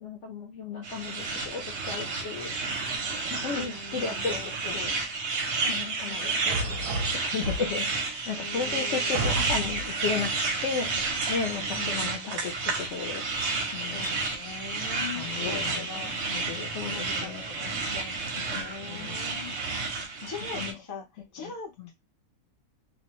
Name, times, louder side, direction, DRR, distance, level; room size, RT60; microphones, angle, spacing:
voice 1, 0.0-2.6 3.3-5.0 5.7-10.3 10.6-13.2 13.7-14.2 15.1-17.8 18.3-19.2 20.2-20.8 21.4-21.5 21.8-21.9, left 5 dB, 65° left, 0.7 m, -35 dB
sound 1, 0.8-20.7, right 3 dB, 60° right, 0.8 m, -31 dB
voice 2, 3.3-4.3 5.6-5.7 6.0-7.2 8.4-9.4 11.4-12.3 13.9-16.1 16.8-19.5 20.2-21.9, left 5 dB, 20° left, 0.5 m, -42 dB
sound 2, 6.5-8.0 8.6-8.7 9.1-10.0, right 2 dB, 85° right, 1.2 m, -31 dB
2.6 x 2.0 x 2.9 m
omnidirectional pair, 1.7 m